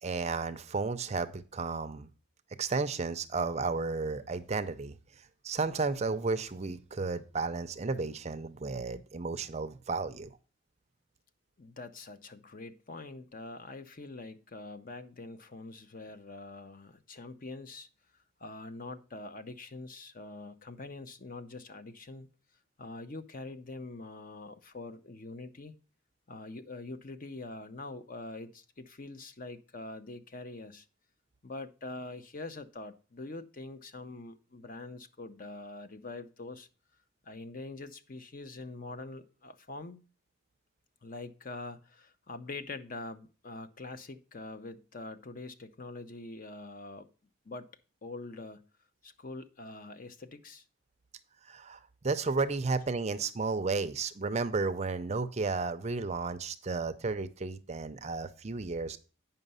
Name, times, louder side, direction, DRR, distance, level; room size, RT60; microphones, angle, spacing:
voice 1, 0.0-2.1 2.6-5.0 5.4-10.3 51.5-59.0, right 4 dB, 30° right, 11 dB, 0.5 m, -33 dB
voice 2, 11.6-17.9 18.4-22.3 22.8-25.7 26.3-30.9 31.4-36.7 37.2-40.1 41.0-47.1 47.4-47.7 48.0-48.6 49.0-50.6, left 2 dB, 40° left, 10 dB, 0.6 m, -44 dB
9.0 x 5.6 x 5.4 m, 0.37 s
head